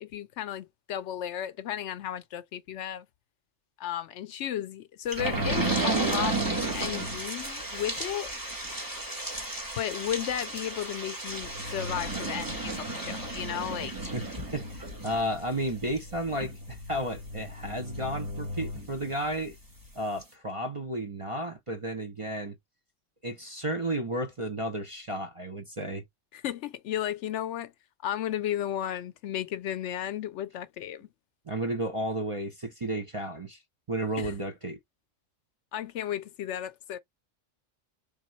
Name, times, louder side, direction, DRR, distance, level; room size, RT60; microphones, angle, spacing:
voice 1, 0.0-3.1 3.8-8.3 9.8-13.9 26.3-27.7 28.0-31.1 34.2-34.3 35.7-37.0, left 11 dB, 70° left, 0.8 m, -34 dB
sound 1, 5.1-19.4 19.8-19.9 20.2-20.3, right 2 dB, 15° right, 1.1 m, -33 dB
voice 2, 14.5-19.6 19.9-22.5 23.2-26.0 31.5-33.6 33.9-34.8, right 1 dB, 35° right, 0.6 m, -33 dB
3.5 x 3.5 x 3.0 m
omnidirectional pair, 1.3 m